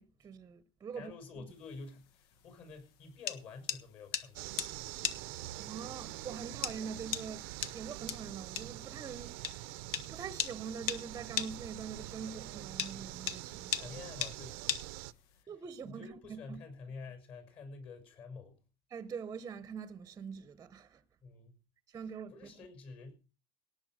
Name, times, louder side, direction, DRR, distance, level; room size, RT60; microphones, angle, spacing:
voice 1, 0.0-1.4 5.6-7.5 7.7-9.8 10.1-13.9 15.5-16.6 18.9-21.0 21.9-22.5, right 6 dB, 20° right, 0.8 m, -44 dB
voice 2, 0.9-4.5 5.4-5.7 13.7-14.6 15.3-15.5 15.8-18.6 21.2-21.6 22.3-23.1, left 4 dB, 45° left, 6.4 m, -49 dB
sound 1, 1.5-15.4, left 9 dB, 80° left, 1.4 m, -39 dB
sound 2, 4.4-15.1, right 17 dB, 80° right, 0.7 m, -45 dB
18.0 x 7.0 x 6.4 m
cardioid pair, 145°, 12 cm